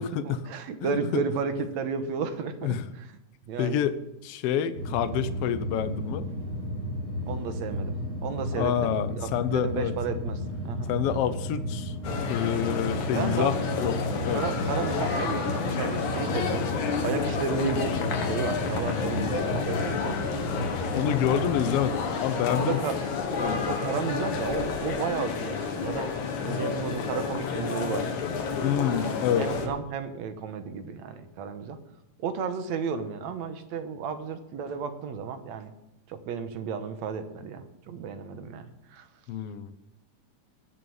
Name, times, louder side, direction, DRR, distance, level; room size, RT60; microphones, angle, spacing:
voice 1, 0.0-3.1 3.5-3.8 7.3-8.0 8.2-10.9 13.1-13.5 14.3-16.6 17.0-20.2 22.6-23.0 23.4-26.1 26.4-28.1 29.4-31.8 32.2-35.7 36.1-38.7 38.9-39.1, right 6 dB, 70° right, 8 dB, 2.4 m, -33 dB
voice 2, 0.8-1.2 2.6-2.9 3.6-4.0 4.2-6.2 8.6-9.9 10.9-12.0 12.3-14.0 14.2-14.4 20.9-22.8 23.4-23.8 26.5-26.6 28.6-29.5 39.3-39.7, left 9 dB, 70° left, 12 dB, 1.6 m, -28 dB
sound 1, 4.8-21.8, equal, 85° right, 5.6 m, -34 dB
sound 2, 12.0-29.7, left 5 dB, 85° left, 3.0 m, -30 dB
18.0 x 6.8 x 7.1 m, 0.87 s
omnidirectional pair, 3.3 m